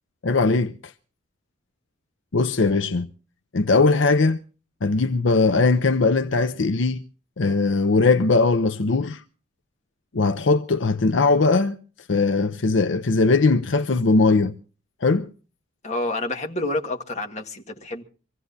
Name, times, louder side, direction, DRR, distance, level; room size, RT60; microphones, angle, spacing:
voice 1, 0.2-0.9 2.3-3.1 3.5-4.4 4.8-7.0 7.4-9.2 10.1-11.8 12.1-14.5 15.0-15.3, left 3 dB, 70° left, 0.6 m, -20 dB
voice 2, 15.8-18.0, left 2 dB, 35° left, 1.6 m, -28 dB
25.0 x 16.0 x 2.7 m
head